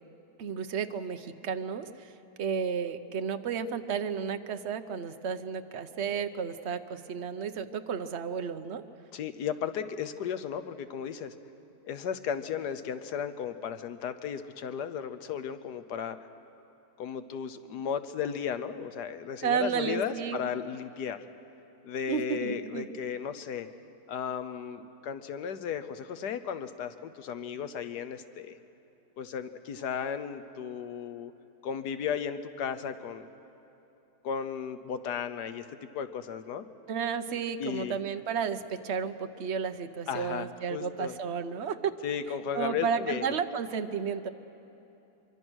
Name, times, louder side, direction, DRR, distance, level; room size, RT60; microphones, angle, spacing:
voice 1, 0.4-2.1 2.4-8.8 19.4-20.4 22.1-22.9 36.9-41.9 42.5-44.3, right 6 dB, 50° right, 9 dB, 0.9 m, -32 dB
voice 2, 9.1-11.3 11.8-16.2 17.0-21.2 21.8-23.7 24.1-28.5 29.2-31.3 31.6-33.3 34.2-36.6 37.6-38.0 40.1-41.2 42.0-43.4, left 7 dB, 80° left, 11 dB, 1.4 m, -35 dB
24.0 x 24.0 x 6.3 m, 3.0 s
omnidirectional pair, 1.7 m